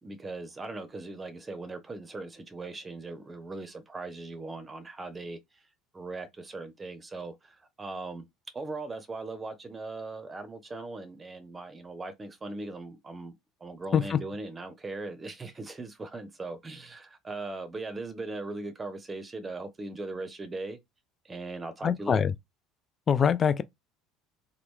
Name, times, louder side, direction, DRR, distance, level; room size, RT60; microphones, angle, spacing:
voice 1, 0.0-5.6 5.9-8.3 8.5-13.3 13.6-20.8 21.2-22.3, right 3 dB, 25° right, 0.7 m, -39 dB
voice 2, 21.8-22.3 23.1-23.6, left 7 dB, 35° left, 0.3 m, -24 dB
3.0 x 2.2 x 3.6 m
hypercardioid pair, 75°, 0 cm